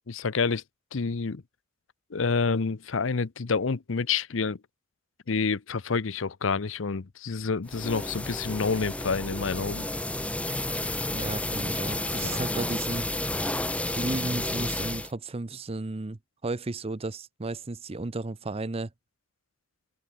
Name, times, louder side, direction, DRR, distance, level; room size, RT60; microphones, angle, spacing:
voice 1, 0.1-0.6 0.9-1.4 2.1-4.6 5.3-9.9 12.2-12.4, left 4 dB, 70° left, 0.7 m, -28 dB
sound 1, 7.7-15.1, left 1 dB, 5° left, 1.0 m, -31 dB
voice 2, 11.1-13.1 13.9-18.9, right 2 dB, 30° right, 0.7 m, -34 dB
open air
head